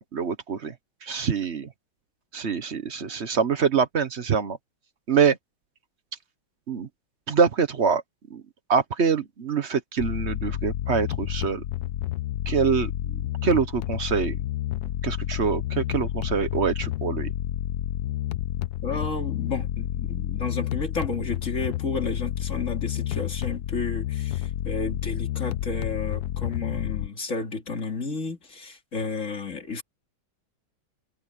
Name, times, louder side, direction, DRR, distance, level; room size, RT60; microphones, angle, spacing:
voice 1, 0.1-0.7 1.0-1.7 2.3-4.6 5.1-5.4 6.7-6.9 7.3-8.0 8.3-8.4 8.7-11.6 12.5-14.4 15.0-17.3, right 6 dB, 40° right, 1.1 m, -25 dB
sound 1, 10.0-27.1, left 13 dB, 65° left, 1.0 m, -30 dB
voice 2, 18.8-29.8, left 3 dB, 35° left, 3.4 m, -32 dB
omnidirectional pair, 2.2 m